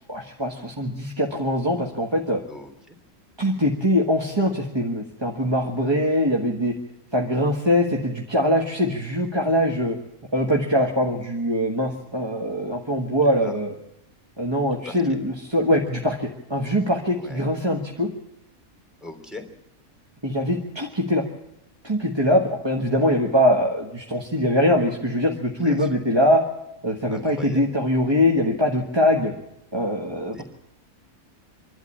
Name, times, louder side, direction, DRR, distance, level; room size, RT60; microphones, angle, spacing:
voice 1, 0.1-2.4 3.4-6.7 7.1-10.0 10.3-13.7 14.4-18.1 20.2-21.2 21.8-26.4 26.8-29.3 29.7-30.4, equal, 20° right, 0 dB, 1.5 m, -22 dB
voice 2, 2.5-3.0 13.2-13.5 14.7-15.0 17.1-17.5 19.0-19.5 25.5-25.9 27.1-27.7 30.3-30.4, left 2 dB, ahead, 4 dB, 3.0 m, -40 dB
26.5 x 12.0 x 8.6 m, 0.87 s
omnidirectional pair, 1.5 m